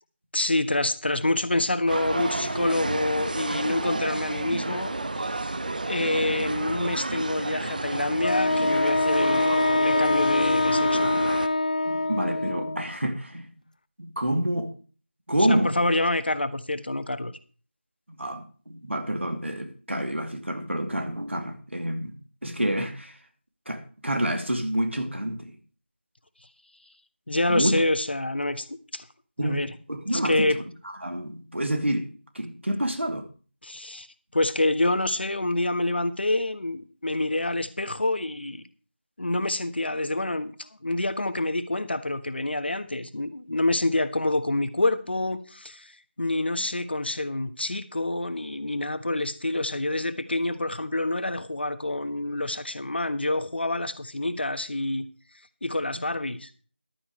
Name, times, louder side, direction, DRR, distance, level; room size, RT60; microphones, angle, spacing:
voice 1, 0.3-5.6 5.8-9.5 9.8-11.1 15.5-17.3 27.3-29.0 29.4-29.7 30.1-30.6 33.6-34.1 34.3-38.6 39.2-55.1 55.6-56.5, left 2 dB, 60° left, 1.3 m, -27 dB
sound 1, 1.9-11.5, right 2 dB, 45° right, 0.7 m, -31 dB
Wind instrument woodwind instrument, 8.2-12.9, left 2 dB, 40° left, 0.5 m, -24 dB
voice 2, 11.8-13.5 14.0-14.7 15.3-15.7 18.1-22.1 22.4-23.2 23.7-25.6 27.5-27.8 29.4-30.6 31.0-32.1 32.3-33.3, right 1 dB, 85° right, 2.7 m, -28 dB
14.5 x 12.0 x 3.2 m
figure-of-eight pair, 170°, 6 cm